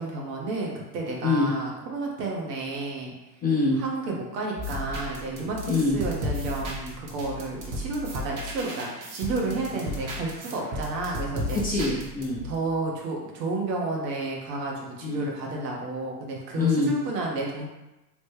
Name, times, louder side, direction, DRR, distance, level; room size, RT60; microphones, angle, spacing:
voice 1, 0.0-3.1 3.8-11.6 12.4-17.7, right 2 dB, 75° right, -1 dB, 1.0 m, -31 dB
voice 2, 1.2-1.5 3.4-3.8 5.7-6.0 11.6-12.4 15.0-15.3 16.5-16.9, left 3 dB, 20° left, -4 dB, 0.4 m, -24 dB
sound 1, 4.6-12.5, left 1 dB, 30° right, 0.7 m, -35 dB
3.1 x 2.1 x 3.2 m, 1.0 s
hypercardioid pair, 100°, 50 cm